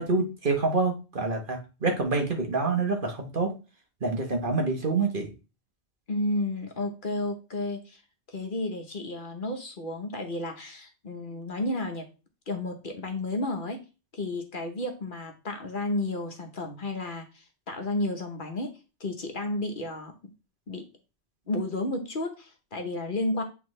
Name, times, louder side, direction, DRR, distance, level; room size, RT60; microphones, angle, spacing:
voice 1, 0.0-3.5 4.0-5.3, right 3 dB, 50° right, 3 dB, 1.3 m, -27 dB
voice 2, 6.1-8.0 8.3-12.1 12.5-13.8 14.1-18.7 19.0-20.1 20.7-20.8 21.5-23.4, left 2 dB, 50° left, 4 dB, 1.1 m, -32 dB
8.5 x 3.5 x 3.2 m, 0.30 s
omnidirectional pair, 1.2 m